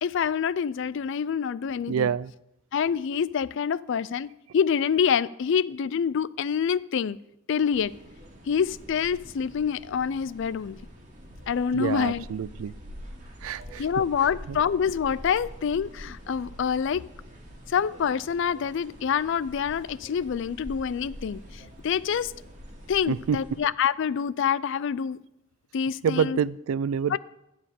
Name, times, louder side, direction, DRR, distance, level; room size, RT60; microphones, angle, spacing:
voice 1, 0.0-2.1 2.7-7.2 7.5-7.9 8.5-10.8 11.5-12.2 13.8-17.0 17.7-22.3 22.9-25.2 25.7-26.4 27.1-27.2, left 7 dB, 60° left, 19 dB, 0.4 m, -26 dB
voice 2, 1.9-2.3 11.7-12.7 13.4-13.9 14.5-14.6 23.1-23.6 26.0-27.2, right 7 dB, 85° right, 20 dB, 0.4 m, -27 dB
sound 1, 7.7-23.6, equal, 35° right, 2.2 m, -46 dB
12.5 x 4.8 x 8.2 m, 0.85 s
head